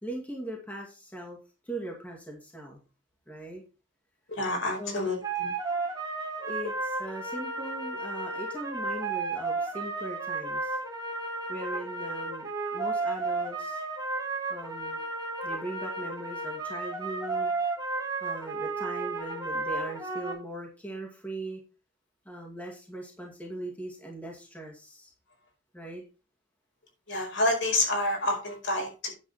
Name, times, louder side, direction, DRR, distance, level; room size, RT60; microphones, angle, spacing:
voice 1, 0.0-1.4 1.6-2.8 3.3-3.6 4.8-5.2 6.5-10.8 11.5-13.8 14.5-15.0 15.4-17.5 18.2-21.6 22.3-25.1 25.7-26.0, right 1 dB, 10° left, -1 dB, 2.3 m, -40 dB
voice 2, 4.3-5.5 27.1-29.1, left 1 dB, 65° left, 2 dB, 5.0 m, -28 dB
sound 1, 5.2-20.3, right 3 dB, 20° right, 2.6 m, -33 dB
9.8 x 7.8 x 4.3 m, 0.32 s
head